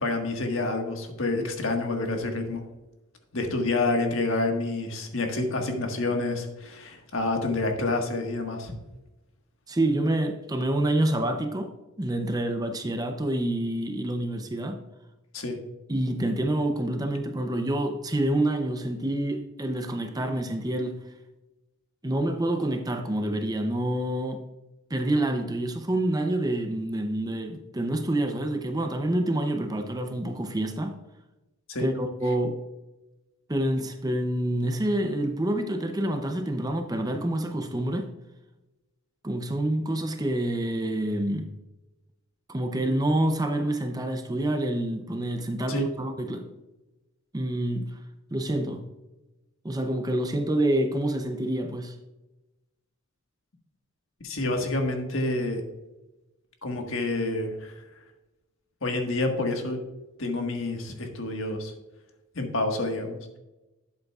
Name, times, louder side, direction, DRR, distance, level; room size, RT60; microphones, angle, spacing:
voice 1, 0.0-2.6 3.3-8.7 15.3-15.6 31.7-31.9 45.7-45.8 54.2-55.6 56.6-57.7 58.8-59.8 60.2-61.7 62.3-63.4, left 2 dB, 60° left, 1.6 m, -28 dB
voice 2, 9.7-11.7 12.0-14.8 15.9-21.0 22.0-24.4 24.9-31.0 31.8-32.6 33.5-38.1 39.2-41.5 42.5-46.5 47.3-48.0 48.3-48.8 49.6-51.9, right 1 dB, 15° right, 0.6 m, -27 dB
12.0 x 8.0 x 2.4 m
head